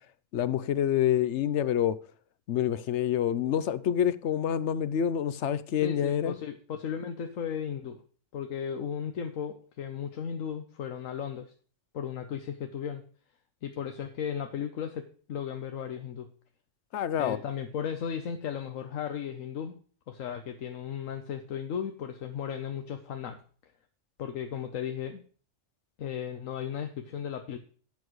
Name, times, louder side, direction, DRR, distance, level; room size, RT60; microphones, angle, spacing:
voice 1, 0.3-2.0 2.5-6.4 16.9-17.4, left 10 dB, 65° left, 0.9 m, -27 dB
voice 2, 5.8-8.0 8.3-11.5 11.9-13.0 13.6-16.3 17.2-19.8 20.1-23.4 24.2-25.2 26.0-27.6, left 8 dB, 85° left, 1.3 m, -35 dB
11.5 x 8.4 x 3.1 m
omnidirectional pair, 1.3 m